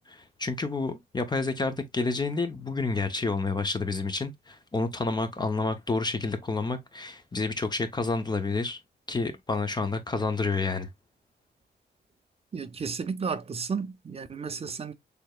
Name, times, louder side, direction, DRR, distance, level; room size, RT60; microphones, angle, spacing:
voice 1, 0.0-8.8 9.1-10.9, left 3 dB, 25° left, 0.6 m, -29 dB
voice 2, 12.5-14.9, right 5 dB, 35° right, 0.6 m, -33 dB
6.6 x 3.4 x 2.3 m
wide cardioid pair, 170°, 18 cm